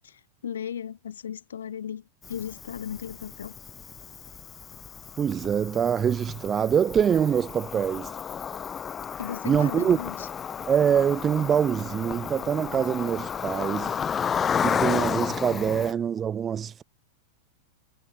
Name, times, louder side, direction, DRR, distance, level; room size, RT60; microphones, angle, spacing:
voice 1, 0.4-2.0 2.3-3.5 9.2-10.3, left 8 dB, 65° left, 3.3 m, -36 dB
Cricket, 2.2-15.9, left 7 dB, 20° left, 0.9 m, -32 dB
voice 2, 5.2-8.1 9.4-10.0 10.7-14.0 14.6-16.8, right 8 dB, 25° right, 2.6 m, -24 dB
figure-of-eight pair, 90°, 0 cm